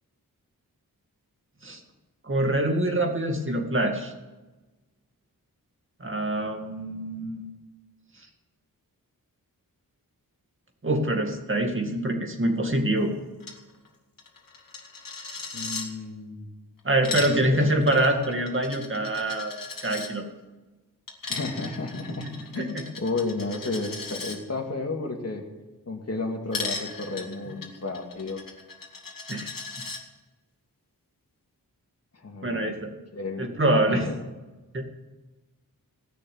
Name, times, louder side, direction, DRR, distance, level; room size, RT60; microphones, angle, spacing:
voice 1, 2.2-4.1 6.0-7.4 10.8-13.1 16.8-19.6 19.8-20.2 22.2-22.3 22.6-22.8 27.5-27.6 29.3-29.5 32.4-32.9 33.4-34.1 34.7-34.9, right 1 dB, 35° right, 3 dB, 2.2 m, -25 dB
Coin (dropping), 13.4-13.6 13.9-14.0 14.2-15.9 16.8-20.1 21.1-24.4 26.5-30.0, left 4 dB, 65° left, 2.2 m, -37 dB
voice 2, 15.5-16.5 17.1-17.7 21.3-22.3 22.5-25.4 25.9-28.4 32.2-32.6 33.1-33.5 33.9-34.2, left 3 dB, 45° left, 2 dB, 2.4 m, -32 dB
17.0 x 6.7 x 9.4 m, 1.2 s
wide cardioid pair, 80°, 36 cm